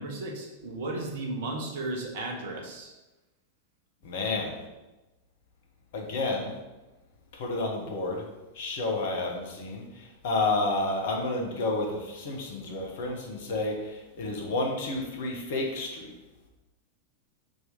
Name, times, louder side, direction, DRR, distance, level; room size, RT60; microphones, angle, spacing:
voice 1, 0.0-2.9, right 2 dB, 55° right, 1 dB, 1.2 m, -34 dB
voice 2, 4.0-4.6 5.9-6.5 7.3-8.2 8.5-9.8 10.2-16.1, left 2 dB, 55° left, 1 dB, 1.3 m, -30 dB
4.7 x 4.0 x 5.1 m, 1.1 s
figure-of-eight pair, 90°, 0 cm